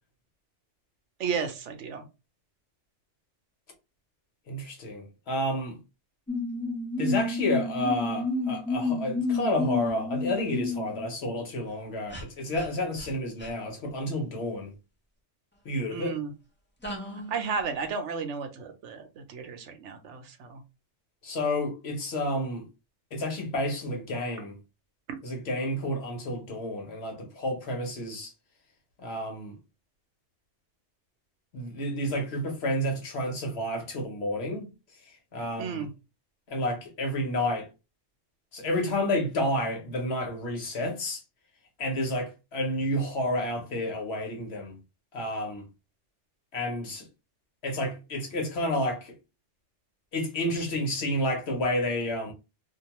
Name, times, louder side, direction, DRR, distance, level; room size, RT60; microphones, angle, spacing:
voice 1, 1.2-2.0 15.9-16.3 17.3-20.6 25.1-25.2 35.6-35.9, right 5 dB, 75° right, 0.9 m, -33 dB
voice 2, 4.5-5.8 7.0-14.7 15.6-16.1 21.2-22.7 23.1-24.6 25.2-28.3 29.0-29.5 31.5-34.7 35.1-35.9 36.5-37.7 38.5-41.2 41.8-44.8 45.1-45.6 46.5-47.1 47.6-49.1 50.1-52.3, left 1 dB, 65° left, 1.1 m, -30 dB
sound 1, 6.3-11.1 12.1-12.2 12.5-12.7 13.0-13.1 13.4-13.5 16.8-17.4, left 3 dB, 15° left, 0.3 m, -30 dB
2.5 x 2.3 x 2.8 m
omnidirectional pair, 1.2 m